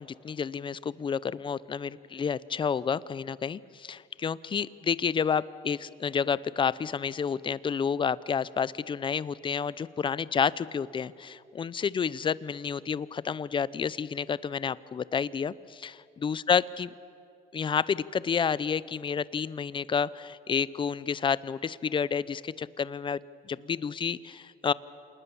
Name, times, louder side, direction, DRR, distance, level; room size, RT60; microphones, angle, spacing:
voice 1, 0.0-16.9 17.5-23.2 23.5-24.7, left 6 dB, 30° left, 19 dB, 0.6 m, -30 dB
27.5 x 19.5 x 7.1 m, 2.4 s
cardioid pair, 110°, 17 cm